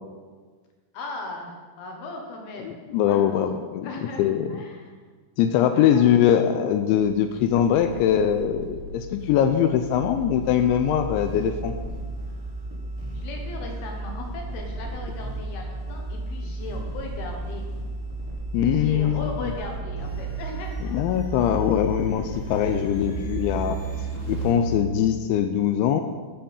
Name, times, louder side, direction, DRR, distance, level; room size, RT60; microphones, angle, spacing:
voice 1, 0.9-2.7 3.1-3.5 3.8-4.9 5.7-6.1 13.1-17.6 18.7-21.0, left 2 dB, 65° left, 1 dB, 2.9 m, -37 dB
voice 2, 2.6-3.9 4.2-4.6 5.4-11.8 18.5-19.3 20.9-23.8 24.3-26.0, left 9 dB, 85° left, 8 dB, 2.8 m, -22 dB
sound 1, 7.0-24.8, right 1 dB, 5° right, 2.1 m, -33 dB
13.0 x 7.8 x 5.4 m, 1.5 s
omnidirectional pair, 5.6 m